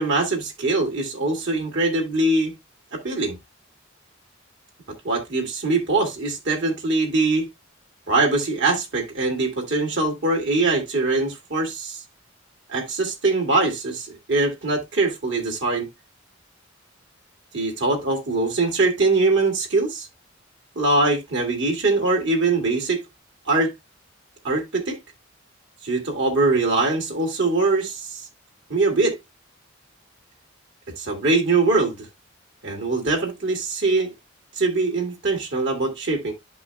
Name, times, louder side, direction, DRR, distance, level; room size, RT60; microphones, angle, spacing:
voice 1, 0.0-2.5 2.9-3.4 5.0-7.5 8.1-12.0 12.7-15.9 17.5-20.1 20.8-23.0 23.5-23.7 24.4-25.0 25.8-28.3 28.7-29.2 31.0-32.1 32.6-34.1 34.5-36.3, right 3 dB, 60° right, 2.2 m, -22 dB
12.0 x 5.4 x 2.3 m
head